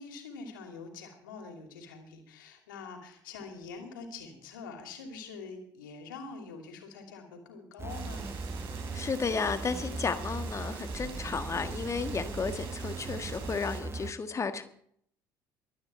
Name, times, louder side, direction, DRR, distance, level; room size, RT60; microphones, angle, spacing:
voice 1, 0.0-8.3, left 4 dB, 70° left, 4 dB, 2.8 m, -45 dB
sound 1, 7.8-14.1, right 4 dB, 20° right, 0.9 m, -38 dB
sound 2, 7.9-13.8, right 6 dB, 50° right, 3.7 m, -49 dB
voice 2, 8.9-14.6, left 5 dB, 25° left, 9 dB, 1.5 m, -33 dB
23.5 x 9.4 x 4.4 m, 0.65 s
figure-of-eight pair, 55°, 11 cm